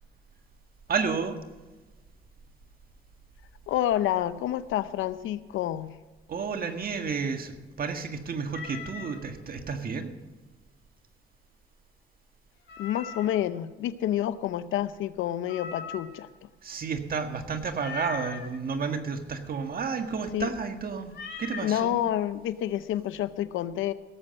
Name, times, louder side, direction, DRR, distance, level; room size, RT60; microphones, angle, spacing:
voice 1, 0.9-1.4 6.3-10.1 16.6-21.1 21.4-22.0, right 5 dB, 50° right, 6 dB, 1.7 m, -31 dB
voice 2, 3.7-5.9 12.8-16.3 20.3-20.5 21.6-23.9, left 12 dB, 85° left, 14 dB, 0.7 m, -28 dB
Meow, 8.5-9.2 12.7-13.5 15.5-16.3 17.8-18.5 21.1-21.8, left 5 dB, 65° left, 4.1 m, -40 dB
17.0 x 7.7 x 6.4 m, 1.2 s
cardioid pair, 90°, 20 cm